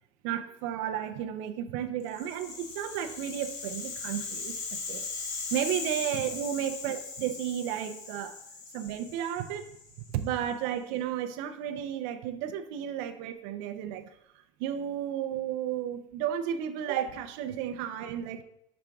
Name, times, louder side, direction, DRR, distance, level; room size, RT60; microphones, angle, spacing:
voice 1, 0.2-5.1 5.5-8.4 8.7-9.7 10.1-14.1 14.6-18.4, right 10 dB, 45° right, 7 dB, 0.4 m, -33 dB
Rattle (instrument), 2.1-10.3, left 4 dB, 65° left, 1.2 m, -39 dB
5.8 x 4.9 x 3.4 m, 0.77 s
supercardioid pair, 175°, 16 cm